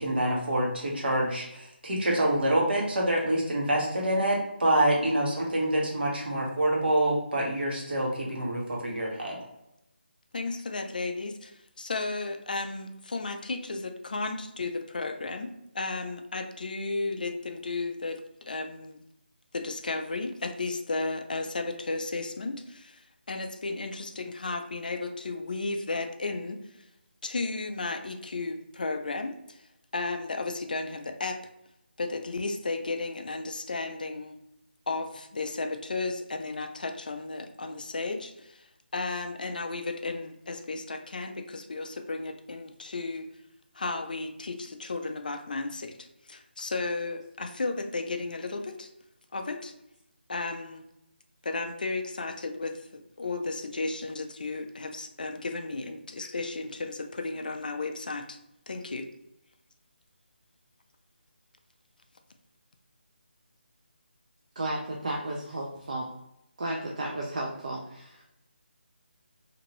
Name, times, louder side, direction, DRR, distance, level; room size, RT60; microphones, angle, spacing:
voice 1, 0.0-9.4, right 1 dB, 60° right, -2 dB, 1.1 m, -26 dB
voice 2, 10.3-19.0 19.5-26.8 27.2-29.7 29.9-31.4 32.0-34.4 34.9-38.7 38.9-43.3 43.7-48.9 49.3-49.7 50.3-50.8 51.4-58.4 58.7-59.1, left 3 dB, 50° left, 6 dB, 0.3 m, -34 dB
voice 3, 64.6-66.1 66.6-68.2, right 1 dB, 35° right, -1 dB, 0.4 m, -33 dB
2.8 x 2.6 x 2.9 m, 0.85 s
figure-of-eight pair, 175°, 6 cm